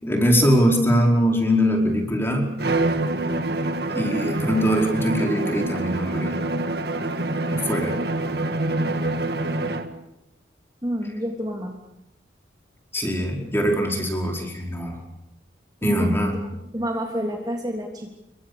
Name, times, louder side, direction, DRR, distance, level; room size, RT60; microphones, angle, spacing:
voice 1, 0.0-2.6 3.9-6.4 7.5-8.0 12.9-15.0 15.8-16.3, equal, 15° left, 1 dB, 5.0 m, -22 dB
Bowed string instrument, 2.6-10.0, right 2 dB, 55° right, 2.0 m, -26 dB
voice 2, 10.8-11.7 15.8-16.3 16.7-18.2, equal, 20° right, 1 dB, 3.0 m, -28 dB
29.0 x 23.5 x 7.1 m, 0.87 s
head